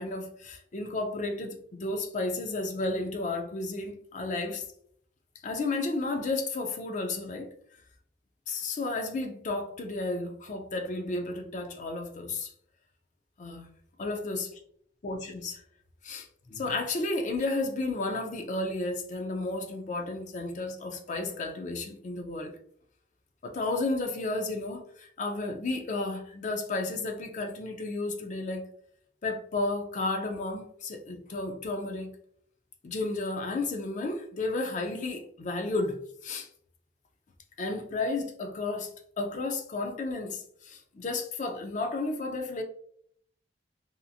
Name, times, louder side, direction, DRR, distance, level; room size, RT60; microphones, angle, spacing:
voice 1, 0.0-4.6 5.4-7.5 8.5-12.5 13.4-13.7 14.0-14.5 15.0-15.6 16.0-22.5 23.4-28.7 29.2-32.1 32.8-36.5 37.6-38.9 39.2-42.6, left 2 dB, 40° left, 0.4 m, -32 dB
2.8 x 2.6 x 2.4 m
head